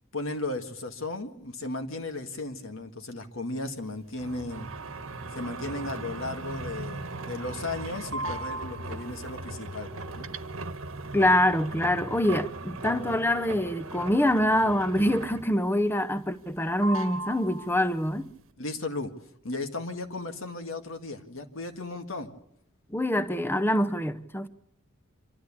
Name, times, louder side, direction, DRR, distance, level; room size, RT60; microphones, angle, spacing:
voice 1, 0.1-4.7 5.3-10.3 18.6-19.1 19.4-22.3, left 2 dB, 70° left, 2.0 m, -35 dB
sound 1, 4.2-15.7 16.0-16.6 16.8-18.1, right 2 dB, 75° right, 1.3 m, -38 dB
voice 2, 11.1-18.3 22.9-24.5, left 1 dB, 10° left, 0.7 m, -25 dB
26.5 x 13.0 x 8.7 m
head